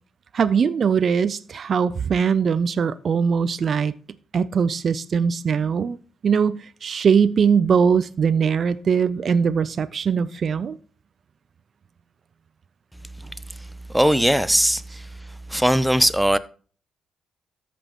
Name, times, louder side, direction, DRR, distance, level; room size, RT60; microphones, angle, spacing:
voice 1, 0.3-3.9 4.3-6.0 6.2-10.8, right 6 dB, 55° right, 0.4 m, -21 dB
voice 2, 13.9-15.1 15.5-16.4, equal, 5° right, 0.7 m, -19 dB
13.5 x 6.0 x 3.0 m
supercardioid pair, 50°, 0 cm